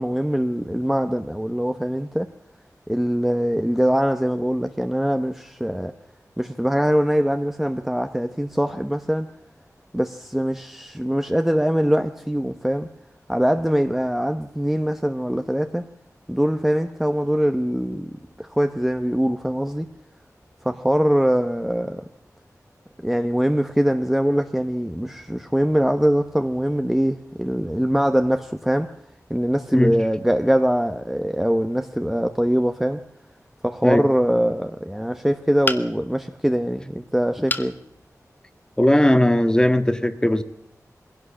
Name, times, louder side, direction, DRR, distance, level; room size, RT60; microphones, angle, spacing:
voice 1, 0.0-2.3 2.9-5.9 6.4-9.3 9.9-12.9 13.3-15.9 16.3-19.9 20.6-22.0 23.0-28.9 29.3-33.0 33.6-37.8, equal, 5° right, 1.1 m, -22 dB
sound 1, 35.6-36.2 37.5-37.8 38.3-38.4 38.8-38.9, left 2 dB, 30° left, 1.6 m, -27 dB
voice 2, 38.8-40.4, left 1 dB, 10° left, 1.6 m, -18 dB
23.0 x 16.5 x 7.3 m
wide cardioid pair, 90°, 6 cm